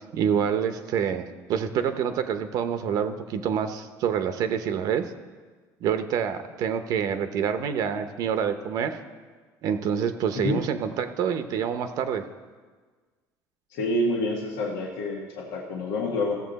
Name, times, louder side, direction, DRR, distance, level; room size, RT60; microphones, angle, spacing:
voice 1, 0.0-5.1 5.8-9.0 9.6-12.2, right 8 dB, 55° right, 8 dB, 0.8 m, -27 dB
voice 2, 13.7-16.4, left 1 dB, 85° left, -2 dB, 1.5 m, -28 dB
16.5 x 7.3 x 4.1 m, 1.4 s
cardioid pair, 130°, 8 cm